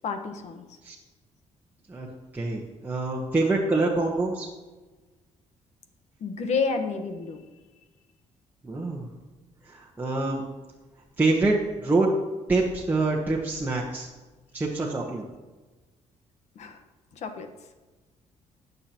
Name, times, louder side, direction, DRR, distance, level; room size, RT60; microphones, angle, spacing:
voice 1, 0.0-0.6 6.2-7.4 16.5-16.8 17.1-17.5, left 5 dB, 65° left, 7 dB, 1.3 m, -30 dB
voice 2, 1.9-4.5 8.6-9.1 9.6-10.4 11.2-12.1 12.5-14.1 14.5-15.2, right 2 dB, 15° right, -3 dB, 1.3 m, -26 dB
20.0 x 6.8 x 3.0 m, 1.2 s
cardioid pair, 115°, 13 cm